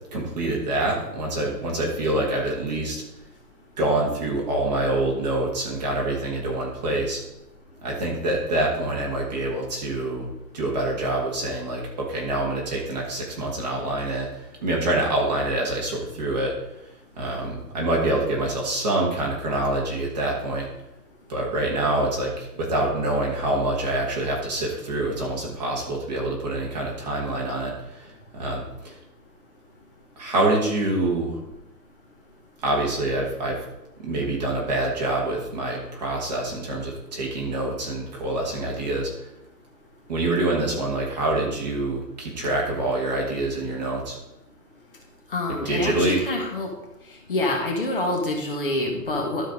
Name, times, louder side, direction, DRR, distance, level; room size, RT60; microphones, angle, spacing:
voice 1, 0.1-3.0 3.8-7.2 7.8-10.3 10.5-16.5 17.2-20.7 21.3-28.9 30.2-31.4 32.6-33.6 34.0-39.1 40.1-44.2 45.6-46.2, right 2 dB, 25° right, -3 dB, 1.8 m, -26 dB
voice 2, 45.3-46.7 47.3-49.5, left 2 dB, 35° left, 1 dB, 1.4 m, -26 dB
12.0 x 4.5 x 5.2 m, 0.90 s
hypercardioid pair, 175°, 48 cm